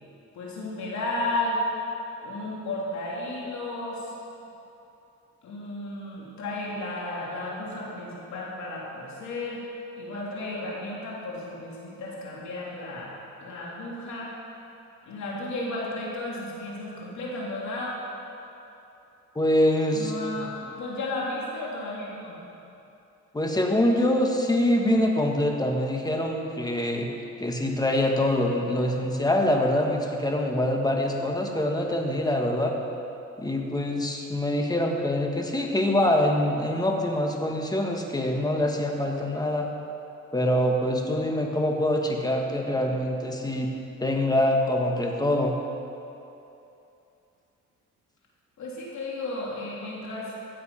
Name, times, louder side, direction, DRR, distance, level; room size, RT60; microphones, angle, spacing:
voice 1, 0.3-1.6 2.2-4.1 5.4-9.6 10.0-13.1 13.4-14.3 15.0-17.9 19.9-22.4 48.6-50.3, left 2 dB, 70° left, -4 dB, 3.3 m, -33 dB
voice 2, 19.3-20.5 23.3-27.1 27.4-32.7 33.4-39.7 40.3-43.7 44.0-45.6, left 1 dB, 15° left, 1 dB, 1.7 m, -25 dB
15.5 x 7.6 x 5.8 m, 2.8 s
cardioid pair, 90°, 30 cm